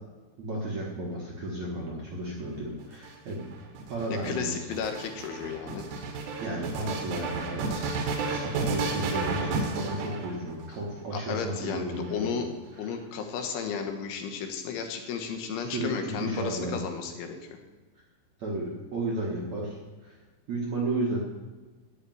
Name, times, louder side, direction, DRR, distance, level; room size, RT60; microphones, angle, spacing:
voice 1, 0.4-3.4 3.9-4.6 6.4-12.4 15.5-16.8 18.4-20.2 20.5-21.2, right 2 dB, 55° right, -3 dB, 2.1 m, -33 dB
sound 1, 2.8-10.8 11.6-12.4, right 4 dB, 75° right, 4.0 m, -33 dB
voice 2, 4.1-5.8 8.3-8.4 11.1-12.5 12.8-17.4, left 6 dB, 75° left, 5 dB, 3.7 m, -33 dB
14.0 x 5.8 x 9.3 m, 1.2 s
omnidirectional pair, 5.7 m